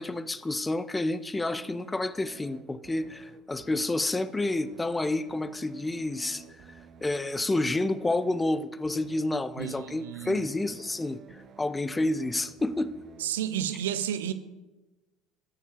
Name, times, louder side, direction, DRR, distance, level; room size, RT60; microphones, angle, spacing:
voice 1, 0.0-6.4 7.0-11.2 11.6-12.9, left 2 dB, 15° left, 15 dB, 0.7 m, -29 dB
sound 1, 1.3-13.4, right 7 dB, 40° right, 0.9 m, -52 dB
voice 2, 9.6-10.4 13.2-14.3, right 10 dB, 70° right, 12 dB, 0.7 m, -31 dB
12.5 x 8.7 x 4.9 m, 1.1 s
figure-of-eight pair, 65°, 0 cm